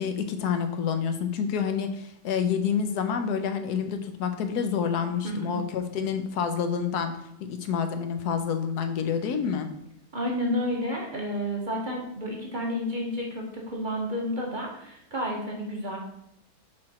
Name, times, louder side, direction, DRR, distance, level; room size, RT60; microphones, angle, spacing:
voice 1, 0.0-7.1 7.5-9.7, left 7 dB, 85° left, 8 dB, 1.2 m, -28 dB
voice 2, 5.2-5.6 10.1-16.0, equal, 35° right, -1 dB, 1.1 m, -31 dB
6.4 x 4.3 x 4.2 m, 0.77 s
omnidirectional pair, 1.6 m